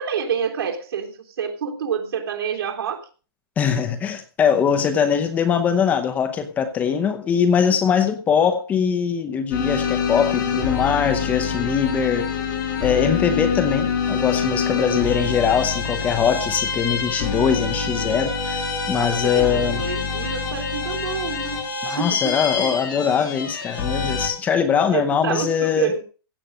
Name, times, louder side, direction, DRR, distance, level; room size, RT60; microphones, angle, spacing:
voice 1, 0.0-3.1 19.0-22.8 24.9-26.0, right 7 dB, 80° right, 1 dB, 3.3 m, -28 dB
voice 2, 3.6-12.3 12.8-19.8 21.8-25.9, left 7 dB, 10° left, 9 dB, 0.8 m, -22 dB
sound 1, 9.5-24.3, left 6 dB, 55° left, 5.2 m, -26 dB
16.0 x 7.8 x 5.5 m, 0.37 s
hypercardioid pair, 175°, 13 cm